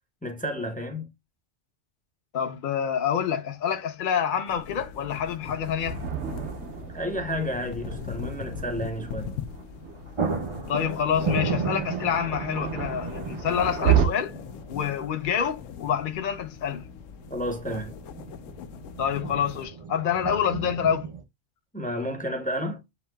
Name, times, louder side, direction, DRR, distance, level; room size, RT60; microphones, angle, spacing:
voice 1, 0.2-1.1 6.9-9.4 17.3-17.9 21.7-22.8, equal, 10° left, 0.6 m, -31 dB
voice 2, 2.3-6.0 10.7-14.3 14.7-16.9 19.0-21.1, left 8 dB, 45° left, 0.8 m, -27 dB
sound 1, 3.2-3.3 4.9-5.3 5.6-5.7 9.4-9.6 9.8-21.2, right 5 dB, 30° right, 0.6 m, -35 dB
sound 2, 4.5-19.7, left 8 dB, 80° left, 0.9 m, -41 dB
Thunder, 5.4-14.1, right 9 dB, 65° right, 1.1 m, -31 dB
8.0 x 2.7 x 2.2 m
omnidirectional pair, 1.3 m